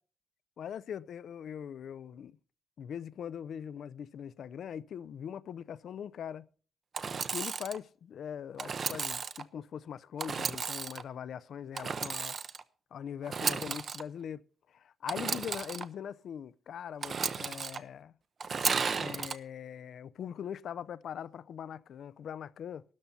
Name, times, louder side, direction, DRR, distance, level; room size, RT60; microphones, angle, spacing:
voice 1, 0.6-2.4 2.8-6.5 7.3-12.4 12.9-14.4 14.7-18.1 18.9-22.8, left 8 dB, 65° left, 0.5 m, -41 dB
Engine / Sawing, 6.9-7.8 8.6-9.4 10.2-11.0 11.7-12.6 13.2-14.0 15.1-15.8 17.0-17.8 18.4-19.3, right 5 dB, 40° right, 0.7 m, -34 dB
12.5 x 12.0 x 4.2 m
wide cardioid pair, 175°, 0 cm